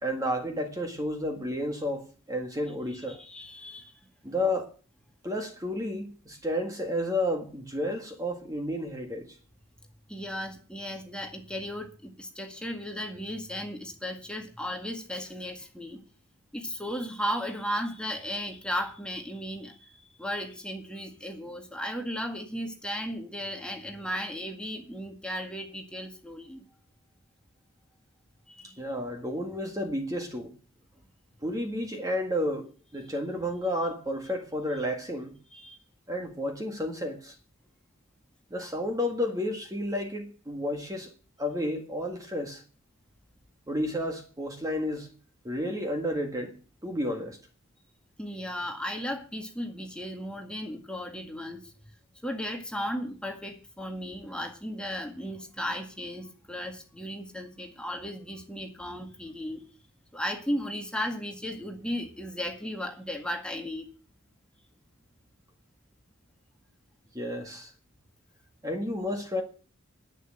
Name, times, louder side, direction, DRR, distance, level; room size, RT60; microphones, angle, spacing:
voice 1, 0.0-3.2 4.2-4.7 5.2-9.4 28.8-30.6 31.4-35.3 36.1-37.4 38.5-41.1 41.4-42.6 43.7-45.1 45.4-47.4 67.1-67.7 68.6-69.4, left 1 dB, 15° right, 1.7 m, -31 dB
voice 2, 3.1-3.9 10.1-16.0 16.5-26.7 28.5-28.8 35.5-35.8 48.2-51.7 52.2-59.6 60.1-63.9, equal, 5° left, 1.9 m, -35 dB
11.0 x 9.1 x 7.6 m
head